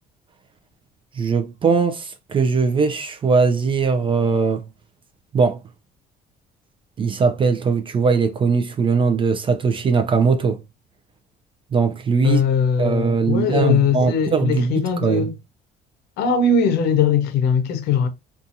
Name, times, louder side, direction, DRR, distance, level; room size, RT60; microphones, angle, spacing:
voice 1, 1.2-4.6 5.3-5.6 7.0-10.6 11.7-12.4 12.8-15.3, right 5 dB, 30° right, 0.4 m, -20 dB
voice 2, 12.2-15.3 16.2-18.1, left 5 dB, 80° left, 0.6 m, -20 dB
2.6 x 2.3 x 2.6 m
cardioid pair, 105°, 17 cm